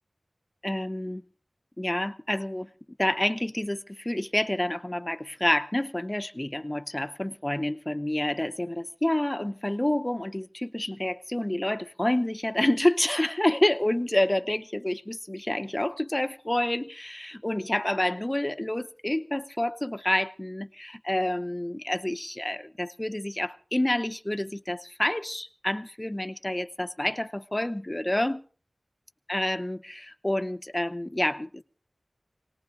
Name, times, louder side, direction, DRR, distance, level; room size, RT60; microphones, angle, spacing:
voice 1, 0.6-1.2 1.8-2.7 3.0-28.4 29.3-31.6, left 1 dB, 20° left, 0.7 m, -28 dB
28.0 x 19.0 x 2.6 m
wide cardioid pair, 55°, 0 cm